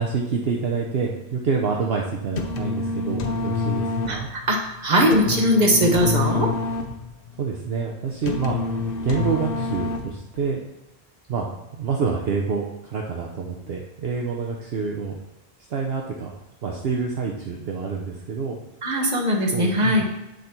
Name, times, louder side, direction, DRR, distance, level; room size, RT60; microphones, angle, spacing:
voice 1, 0.0-4.3 7.4-10.6 11.3-15.2 15.7-16.3 16.6-18.6 19.5-20.0, right 5 dB, 65° right, 0 dB, 0.9 m, -27 dB
sound 1, 2.3-10.4, left 4 dB, 60° left, 0.8 m, -27 dB
voice 2, 4.1-6.5 18.8-20.0, equal, 40° right, 1 dB, 1.3 m, -20 dB
7.8 x 4.0 x 4.4 m, 0.99 s
omnidirectional pair, 1.1 m